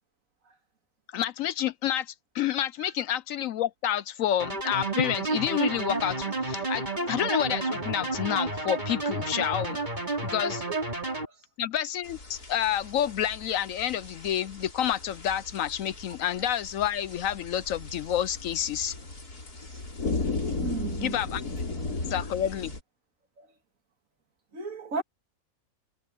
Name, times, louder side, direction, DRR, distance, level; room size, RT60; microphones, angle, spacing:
voice 1, 1.1-9.8 10.2-10.6 11.6-18.9 21.0-21.4 22.1-22.7, left 10 dB, 70° left, 0.9 m, -29 dB
sound 1, 4.4-11.3, right 2 dB, 30° right, 4.3 m, -30 dB
sound 2, 12.0-22.8, left 3 dB, 90° left, 4.7 m, -36 dB
voice 2, 20.6-21.2 21.9-22.3 23.4-23.5 24.5-25.0, right 5 dB, 60° right, 2.3 m, -36 dB
omnidirectional pair, 1.6 m